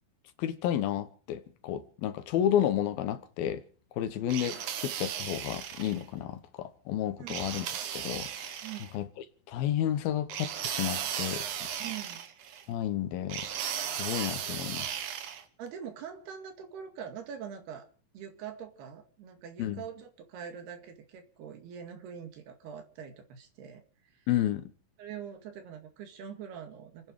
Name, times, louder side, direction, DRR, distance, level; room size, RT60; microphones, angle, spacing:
voice 1, 0.4-3.6 4.0-7.7 7.9-8.6 8.9-9.1 9.5-11.7 12.7-13.5 13.9-15.0 19.6-19.8 24.3-24.6, left 11 dB, 75° left, 2.8 m, -31 dB
sound 1, 4.3-6.0 7.3-8.9 10.3-12.6 13.3-15.4, right 9 dB, 65° right, 2.4 m, -36 dB
voice 2, 11.8-12.3 15.6-17.9 18.1-23.8 24.1-24.3 25.0-27.1, right 8 dB, 85° right, 4.2 m, -43 dB
28.5 x 10.0 x 4.8 m
omnidirectional pair, 4.5 m